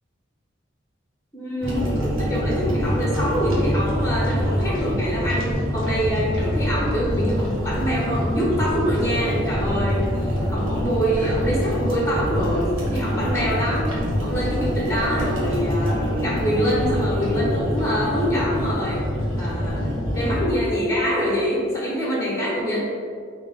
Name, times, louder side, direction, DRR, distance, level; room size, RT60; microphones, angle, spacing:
voice 1, 1.3-13.9 14.2-19.0 19.4-22.8, equal, 15° left, -5 dB, 0.9 m, -25 dB
sound 1, 1.6-20.5, equal, 85° right, 1.2 m, -25 dB
5.3 x 2.8 x 3.6 m, 2.2 s
head